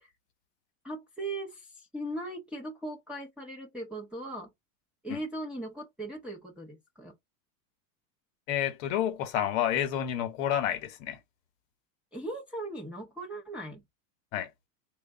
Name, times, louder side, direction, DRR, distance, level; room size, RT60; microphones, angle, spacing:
voice 1, 0.8-1.7 1.9-4.5 5.0-7.1 12.1-13.8, right 1 dB, ahead, 0.6 m, -38 dB
voice 2, 8.5-11.2 14.3-14.5, left 10 dB, 55° left, 1.1 m, -29 dB
3.1 x 2.3 x 4.3 m
supercardioid pair, 145°, 47 cm